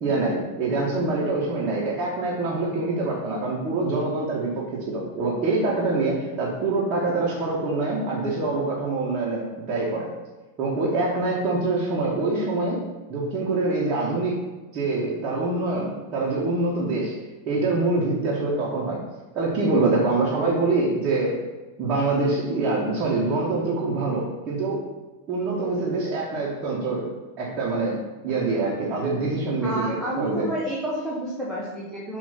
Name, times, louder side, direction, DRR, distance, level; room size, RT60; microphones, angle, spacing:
voice 1, 0.0-10.1 10.6-12.8 13.1-14.4 14.7-17.1 17.5-19.0 19.3-21.4 21.8-24.8 25.3-27.1 27.4-28.0 28.2-30.5, right 3 dB, 30° right, -6 dB, 1.6 m, -25 dB
voice 2, 29.6-32.2, right 1 dB, ahead, -7 dB, 1.3 m, -30 dB
7.6 x 3.1 x 5.7 m, 1.2 s
figure-of-eight pair, 90°, 0 cm